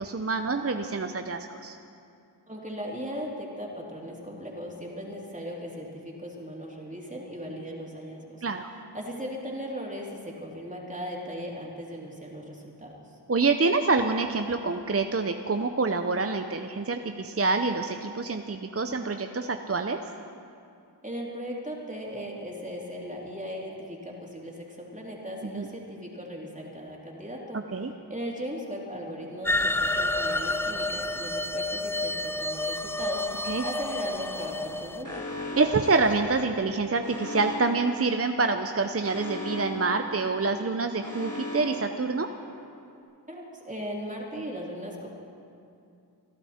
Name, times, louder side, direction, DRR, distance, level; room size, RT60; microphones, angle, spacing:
voice 1, 0.0-1.8 8.4-8.7 13.3-20.0 25.5-25.7 27.7-27.9 33.5-33.6 35.6-42.3, right 3 dB, 35° right, 6 dB, 0.7 m, -26 dB
voice 2, 2.5-8.4 8.9-13.2 21.0-27.6 28.1-35.3 43.3-45.1, equal, 20° right, -2 dB, 3.2 m, -38 dB
sound 1, 29.4-35.0, left 2 dB, 5° left, 0.4 m, -29 dB
Alarm, 35.0-42.8, left 1 dB, 45° left, 4.0 m, -39 dB
27.0 x 12.0 x 4.4 m, 2.5 s
wide cardioid pair, 40°, 42 cm